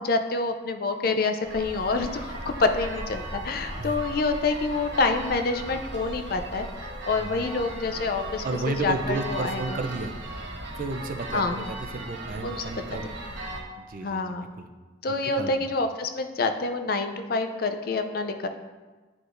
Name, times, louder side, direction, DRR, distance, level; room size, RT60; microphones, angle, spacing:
voice 1, 0.0-9.8 11.3-11.6 12.4-12.6 14.0-14.5 15.0-18.5, left 3 dB, 50° left, 7 dB, 0.4 m, -27 dB
sound 1, 1.4-13.6, right 1 dB, 65° right, 1.3 m, -37 dB
voice 2, 7.1-7.7 8.4-10.1 10.8-13.1 13.8-14.7 15.2-15.7, right 3 dB, 45° right, 6 dB, 0.5 m, -33 dB
9.6 x 4.8 x 2.6 m, 1.3 s
head